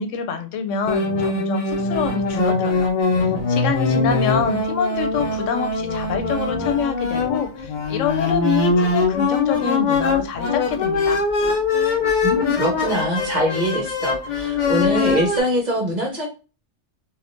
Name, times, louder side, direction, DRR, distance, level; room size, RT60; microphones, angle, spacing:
voice 1, 0.0-2.9 3.2-11.2, left 6 dB, 80° left, 7 dB, 0.9 m, -26 dB
sound 1, 0.9-15.4, left 4 dB, 55° left, 0.5 m, -22 dB
voice 2, 12.2-16.3, equal, 40° right, 0 dB, 0.8 m, -23 dB
3.5 x 2.3 x 2.5 m, 0.33 s
omnidirectional pair, 1.3 m